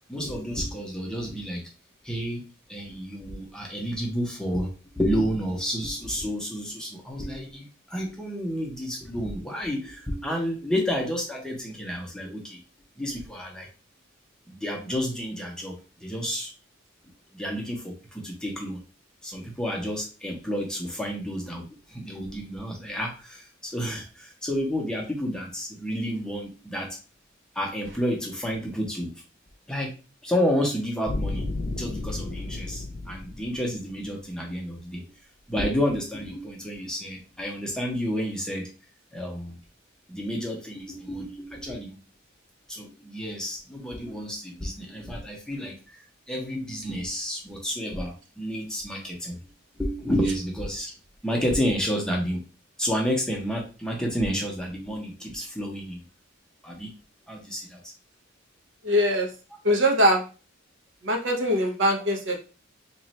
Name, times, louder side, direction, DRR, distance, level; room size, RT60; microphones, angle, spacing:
voice 1, 0.1-1.7 2.0-4.7 4.9-12.6 13.0-13.7 14.5-16.5 17.3-18.8 19.2-27.0 27.5-29.1 29.7-29.9 30.2-31.5 31.7-35.1 35.5-38.7 39.1-39.6 40.1-41.9 42.7-49.4 49.8-50.9 51.2-52.4 52.8-56.0 56.6-56.9 57.3-57.9, equal, 5° left, -1 dB, 0.7 m, -30 dB
sound 1, 31.1-34.3, left 2 dB, 50° left, 0.6 m, -33 dB
voice 2, 58.8-59.3 59.6-60.2 61.0-62.4, equal, 65° right, 2 dB, 0.8 m, -22 dB
3.0 x 2.4 x 4.1 m, 0.33 s
head